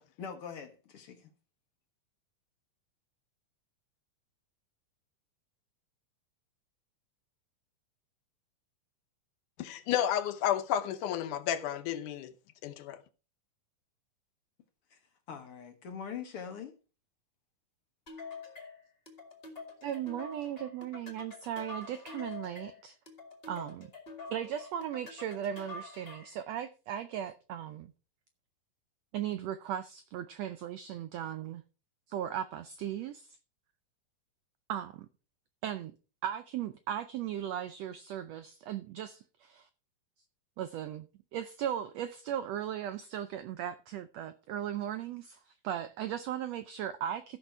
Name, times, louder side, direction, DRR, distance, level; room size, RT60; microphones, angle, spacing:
voice 1, 0.2-1.3 14.9-15.0 15.3-16.8, left 7 dB, 55° left, 1.7 m, -43 dB
voice 2, 9.6-12.3 12.6-13.0, left 10 dB, 75° left, 2.3 m, -31 dB
sound 1, 18.1-26.4, left 3 dB, 20° left, 1.7 m, -46 dB
voice 3, 19.8-23.0 23.5-23.9 24.3-27.9 29.1-31.6 32.1-33.4 34.7-34.9 35.6-35.9 36.2-39.7 40.6-41.1 41.3-47.4, right 10 dB, 85° right, 1.4 m, -37 dB
14.5 x 6.2 x 4.5 m
omnidirectional pair, 3.8 m